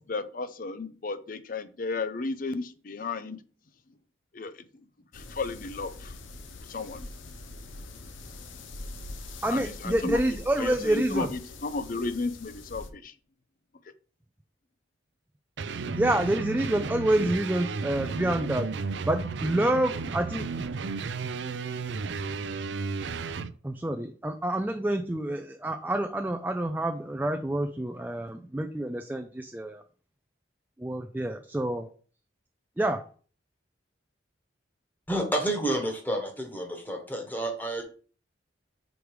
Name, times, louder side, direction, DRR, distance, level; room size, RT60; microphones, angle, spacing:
voice 1, 0.1-3.4 4.3-4.5 5.1-6.1 6.7-7.1 9.5-10.2 10.6-13.1, left 3 dB, 45° left, 13 dB, 0.5 m, -33 dB
sound 1, 5.1-12.9, left 2 dB, 90° left, 0.8 m, -43 dB
voice 2, 9.4-11.3 16.0-18.7 19.0-20.5 23.6-29.8 30.8-31.9 32.8-33.1, right 1 dB, 10° right, 6 dB, 0.3 m, -28 dB
sound 2, 15.6-23.5, right 4 dB, 70° right, 0.4 m, -33 dB
voice 3, 35.1-37.8, right 1 dB, 10° left, 3 dB, 1.3 m, -30 dB
5.2 x 4.8 x 4.7 m, 0.41 s
head